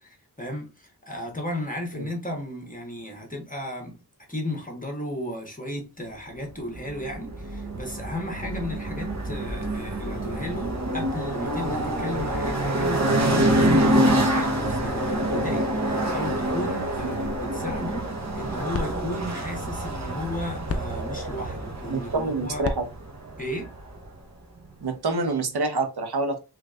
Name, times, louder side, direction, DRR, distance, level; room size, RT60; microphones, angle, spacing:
voice 1, 0.0-4.0 4.3-22.7 23.4-23.7, left 1 dB, 20° left, 1.3 m, -34 dB
sound 1, 6.7-24.1, right 1 dB, 40° right, 1.0 m, -26 dB
sound 2, 18.2-24.6, left 3 dB, 35° left, 0.5 m, -39 dB
voice 2, 21.9-22.8 24.8-26.4, right 3 dB, 65° right, 1.0 m, -27 dB
3.2 x 3.2 x 2.4 m
cardioid pair, 45°, 42 cm